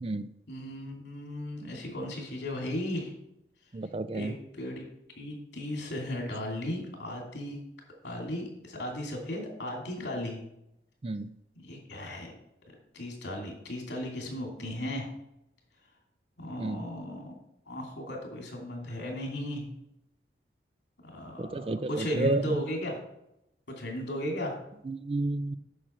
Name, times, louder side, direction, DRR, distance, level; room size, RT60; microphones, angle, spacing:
voice 1, 0.5-3.1 4.1-4.8 5.2-7.6 8.0-10.4 11.7-12.3 12.9-15.1 16.4-17.3 17.7-19.7 21.1-23.0 23.8-24.6, left 1 dB, 85° left, 1 dB, 2.7 m, -36 dB
voice 2, 3.7-4.3 11.0-11.3 16.6-16.8 21.4-22.4 24.9-25.5, right 2 dB, 30° right, 12 dB, 0.4 m, -31 dB
8.7 x 6.4 x 4.5 m, 0.81 s
head